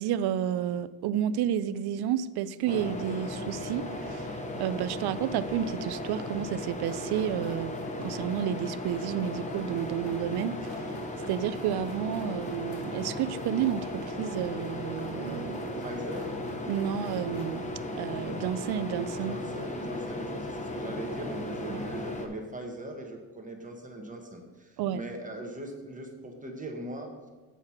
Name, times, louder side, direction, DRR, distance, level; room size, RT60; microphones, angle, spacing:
voice 1, 0.0-7.7 8.0-10.8 11.3-15.9 16.7-17.6 18.0-19.4 21.7-21.8 24.8-25.0, right 10 dB, 90° right, 15 dB, 0.5 m, -31 dB
sound 1, 2.7-22.3, left 1 dB, 20° left, 0.8 m, -36 dB
sound 2, 6.7-17.7, left 1 dB, 40° left, 1.8 m, -53 dB
voice 2, 15.8-16.3 19.2-27.1, right 1 dB, 20° right, 2 dB, 1.0 m, -40 dB
7.9 x 4.9 x 5.7 m, 1.3 s
cardioid pair, 155°, 37 cm